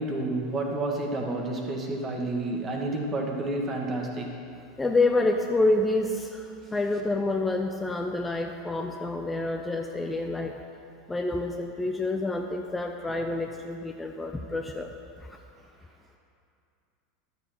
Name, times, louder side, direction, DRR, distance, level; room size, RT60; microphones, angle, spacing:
voice 1, 0.0-4.3, right 2 dB, 30° right, 1 dB, 1.6 m, -30 dB
voice 2, 4.8-10.5 11.1-15.4, left 2 dB, 15° left, 3 dB, 0.6 m, -28 dB
12.0 x 6.8 x 4.4 m, 2.5 s
hypercardioid pair, 85°, 0 cm